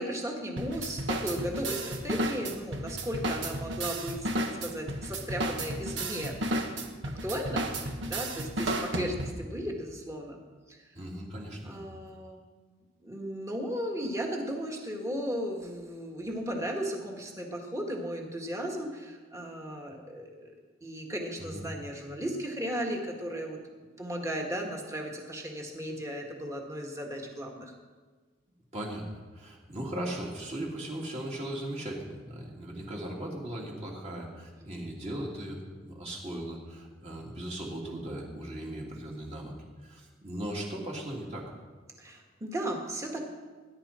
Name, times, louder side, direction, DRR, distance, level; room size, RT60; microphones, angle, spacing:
voice 1, 0.0-10.4 10.7-10.8 11.6-12.4 13.0-20.5 20.8-23.6 24.0-27.7 42.0-43.2, equal, 15° right, 1 dB, 1.8 m, -36 dB
sound 1, 0.6-9.5, right 1 dB, 70° right, 1.4 m, -33 dB
voice 2, 10.9-11.8 21.4-21.6 28.7-29.0 29.3-41.5, right 1 dB, 35° right, -2 dB, 3.1 m, -38 dB
20.5 x 11.0 x 4.4 m, 1.4 s
head